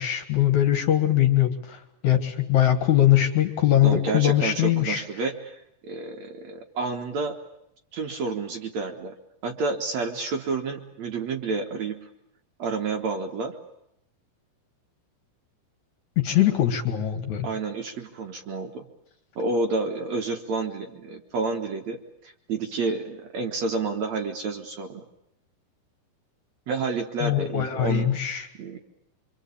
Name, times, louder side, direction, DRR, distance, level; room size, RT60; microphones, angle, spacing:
voice 1, 0.0-1.8 2.0-5.0 16.2-17.5 27.2-28.5, left 12 dB, 55° left, 8 dB, 2.6 m, -21 dB
voice 2, 3.8-7.4 7.9-9.2 9.4-12.1 12.6-13.6 17.4-18.9 19.4-25.0 26.7-28.8, right 3 dB, 60° right, 4 dB, 2.2 m, -30 dB
25.5 x 25.5 x 8.5 m, 0.80 s
omnidirectional pair, 4.4 m